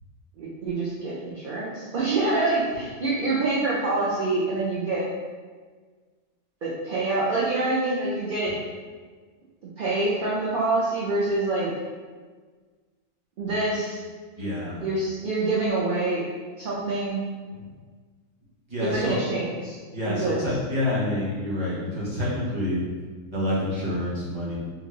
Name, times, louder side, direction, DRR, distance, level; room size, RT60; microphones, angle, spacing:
voice 1, 0.4-5.1 6.6-8.5 9.8-11.7 13.4-14.0 14.8-16.3 16.6-17.2 18.8-19.8 20.1-20.4, right 2 dB, 55° right, -7 dB, 0.6 m, -26 dB
voice 2, 14.4-14.8 18.7-19.2 19.9-22.8 23.3-24.5, left 1 dB, 25° right, -8 dB, 0.9 m, -27 dB
3.1 x 2.3 x 3.7 m, 1.5 s
omnidirectional pair, 1.4 m